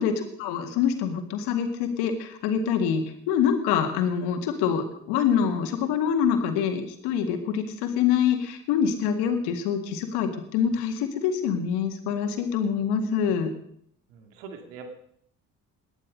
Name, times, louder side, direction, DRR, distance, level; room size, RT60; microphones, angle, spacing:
voice 1, 0.0-13.5, left 7 dB, 80° left, 6 dB, 2.0 m, -25 dB
voice 2, 14.1-14.9, right 5 dB, 85° right, 5 dB, 2.2 m, -42 dB
18.0 x 11.5 x 5.3 m, 0.69 s
hypercardioid pair, 50°, 39 cm